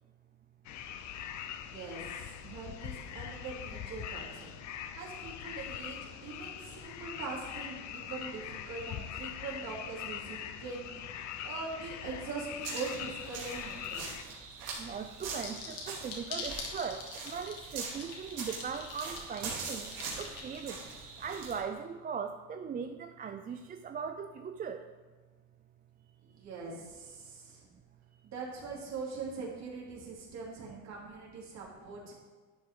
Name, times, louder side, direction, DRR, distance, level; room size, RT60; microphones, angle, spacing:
sound 1, 0.6-14.2, left 9 dB, 55° left, 0.7 m, -42 dB
voice 1, 1.5-4.5 4.9-10.9 11.4-14.1 26.2-27.7 28.2-32.1, right 4 dB, 50° right, -4 dB, 3.3 m, -42 dB
sound 2, 12.6-21.6, right 4 dB, 80° right, 2.9 m, -43 dB
voice 2, 14.8-20.8 21.2-24.8, right 6 dB, 25° right, 7 dB, 0.4 m, -39 dB
sound 3, 15.4-20.9, left 5 dB, 70° left, 2.2 m, -43 dB
11.5 x 7.5 x 3.8 m, 1.4 s
cardioid pair, 115°, 34 cm